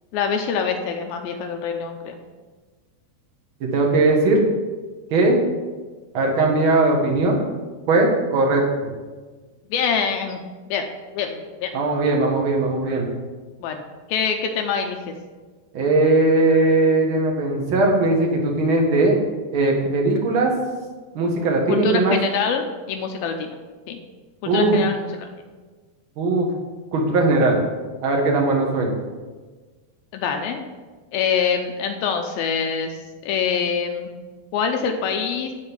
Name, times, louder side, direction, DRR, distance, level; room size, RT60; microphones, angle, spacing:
voice 1, 0.1-2.2 9.7-10.4 10.7-10.8 11.1-11.7 13.6-13.8 14.1-15.1 21.7-23.6 23.9-24.0 24.4-25.3 30.1-30.6 31.1-34.1 34.5-35.5, left 6 dB, 80° left, 4 dB, 2.4 m, -25 dB
voice 2, 3.6-4.4 5.1-5.4 6.1-7.4 7.9-8.9 11.7-13.1 15.7-19.1 19.5-20.5 21.1-22.2 24.4-24.8 26.2-26.5 26.9-27.6 28.0-28.9, right 2 dB, 55° right, 0 dB, 1.4 m, -19 dB
11.5 x 4.5 x 7.1 m, 1.3 s
omnidirectional pair, 4.6 m